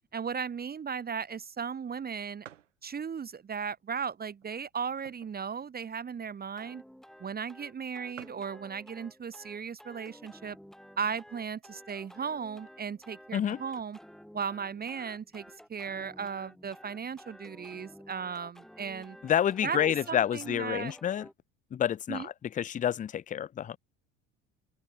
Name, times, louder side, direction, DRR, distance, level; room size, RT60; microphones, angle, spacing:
voice 1, 0.1-2.5 2.8-6.8 7.2-10.6 11.0-14.0 14.3-19.2 19.6-20.9 22.1-22.3, right 6 dB, 25° right, 1.3 m, -36 dB
sound 1, 1.5-1.6 1.9-2.0 2.4-2.8 3.4-3.5 4.3-5.5 5.9-6.0 6.1-6.4 7.2-7.3 7.5-7.6 7.8-7.9 8.1-8.5 9.4-9.8 10.3-10.4 10.6-11.4, right 10 dB, 80° right, 5.6 m, -52 dB
sound 2, 6.6-21.3, equal, ahead, 6.3 m, -53 dB
voice 2, 19.2-21.3 21.7-23.8, left 10 dB, 20° left, 0.6 m, -29 dB
open air
figure-of-eight pair, 70°, 37 cm